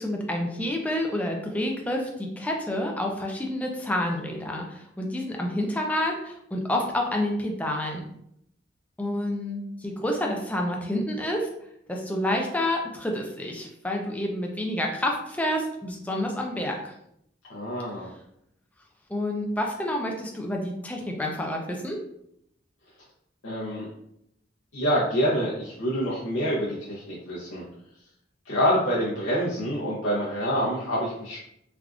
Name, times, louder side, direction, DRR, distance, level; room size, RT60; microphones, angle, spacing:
voice 1, 0.0-8.0 9.0-11.5 11.9-16.9 19.1-22.0, left 1 dB, 10° left, 1 dB, 0.4 m, -29 dB
voice 2, 17.5-18.1 23.4-23.9 24.7-27.7 28.5-31.4, equal, 85° left, -7 dB, 0.7 m, -26 dB
3.4 x 2.4 x 2.3 m, 0.75 s
head